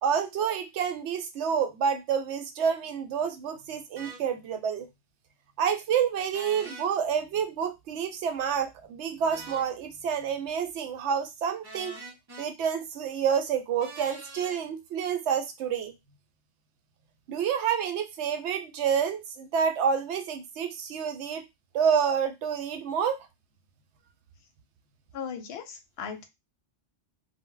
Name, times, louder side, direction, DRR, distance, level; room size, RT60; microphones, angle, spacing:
voice 1, 0.0-4.9 5.6-12.0 12.4-15.9 17.3-21.4 21.7-23.3, right 7 dB, 70° right, 7 dB, 0.9 m, -28 dB
sound 1, 4.0-4.2 6.3-6.9 9.3-9.7 11.6-12.5 13.8-14.6, right 3 dB, 35° right, 0.4 m, -43 dB
voice 2, 25.1-26.2, left 7 dB, 65° left, 6 dB, 0.8 m, -37 dB
2.1 x 2.0 x 3.7 m, 0.21 s
omnidirectional pair, 1.2 m